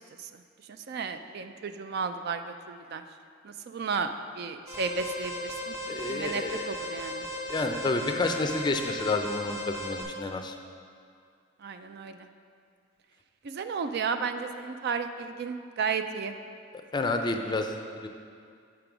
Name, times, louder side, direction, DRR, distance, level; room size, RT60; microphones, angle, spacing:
voice 1, 0.7-3.0 3.4-5.8 6.1-7.3 11.6-12.3 13.4-16.3, right 5 dB, 55° right, 9 dB, 0.4 m, -33 dB
Alarm, 4.7-10.0, left 1 dB, 15° right, 1.7 m, -36 dB
voice 2, 5.9-6.6 7.5-10.6 16.9-18.1, left 2 dB, 20° left, 5 dB, 0.4 m, -30 dB
7.6 x 5.2 x 6.0 m, 2.3 s
head